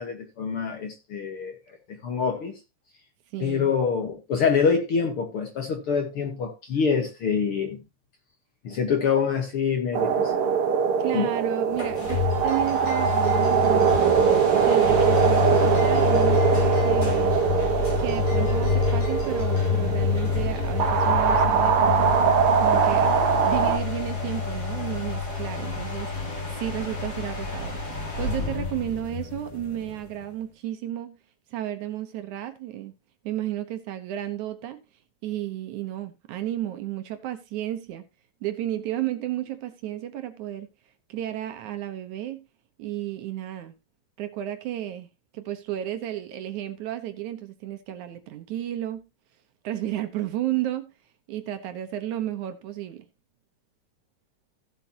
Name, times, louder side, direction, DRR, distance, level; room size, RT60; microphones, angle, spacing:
voice 1, 0.0-1.5 1.9-2.6 3.4-7.8 8.6-10.3 11.1-11.3, left 6 dB, 55° left, 1.8 m, -25 dB
voice 2, 3.3-3.7 11.0-14.2 14.6-17.4 18.0-22.1 22.6-23.2 23.4-31.2 31.5-32.9 33.2-34.8 35.2-38.0 38.4-40.7 41.1-42.4 42.8-43.8 44.2-45.1 45.3-49.1 49.6-50.9 51.3-53.1, right 12 dB, 70° right, 2.2 m, -33 dB
sound 1, 9.9-23.8, right 7 dB, 55° right, 1.8 m, -22 dB
sound 2, 11.7-30.2, left 6 dB, 30° left, 3.0 m, -28 dB
sound 3, 12.0-22.4, left 2 dB, 85° left, 6.5 m, -47 dB
16.0 x 7.7 x 2.9 m
omnidirectional pair, 3.9 m